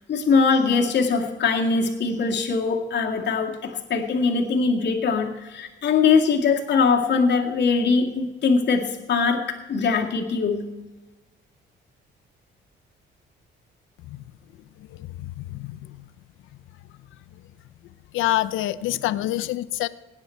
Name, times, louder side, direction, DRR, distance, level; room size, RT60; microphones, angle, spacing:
voice 1, 0.1-10.7, left 5 dB, 65° left, 1 dB, 2.2 m, -22 dB
voice 2, 14.8-16.1 18.1-19.9, left 15 dB, 85° left, 15 dB, 0.6 m, -27 dB
18.0 x 9.6 x 4.6 m, 1.1 s
cardioid pair, 90°, 20 cm